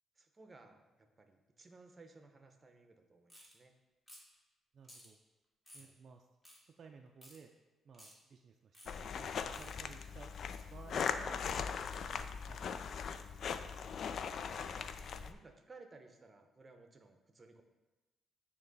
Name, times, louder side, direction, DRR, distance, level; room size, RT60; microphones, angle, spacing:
voice 1, 0.2-3.7 5.8-6.0 12.0-12.2 15.2-17.6, right 3 dB, 30° right, 5 dB, 0.7 m, -59 dB
sound 1, 3.3-3.5 4.1-4.3 4.8-5.1 5.7-5.9 6.4-6.6 7.2-7.4 7.9-8.1 8.7-8.9 9.5-9.7, equal, 15° left, 1.7 m, -56 dB
voice 2, 4.7-5.2 5.7-6.3 6.5-7.5 7.8-10.3 10.7-11.6 12.1-12.6 13.3-13.4, right 5 dB, 55° right, 3 dB, 0.4 m, -57 dB
sound 2, 8.9-15.3, left 6 dB, 60° left, 0.3 m, -40 dB
8.8 x 3.0 x 4.0 m, 1.1 s
cardioid pair, 90°, 0 cm